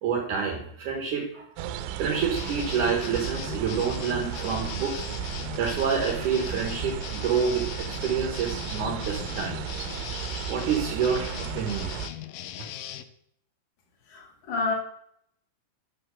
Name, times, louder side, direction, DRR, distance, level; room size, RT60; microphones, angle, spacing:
voice 1, 0.0-1.7 2.0-5.1 5.6-9.6 9.9-10.1 10.5-11.9, right 6 dB, 65° right, 2.3 m, -28 dB
sound 1, 1.6-12.1, right 10 dB, 85° right, 2.7 m, -35 dB
sound 2, 2.4-13.0, left 12 dB, 90° left, 1.8 m, -39 dB
voice 2, 14.1-14.7, left 3 dB, 65° left, 1.1 m, -29 dB
8.1 x 6.1 x 6.1 m
omnidirectional pair, 4.5 m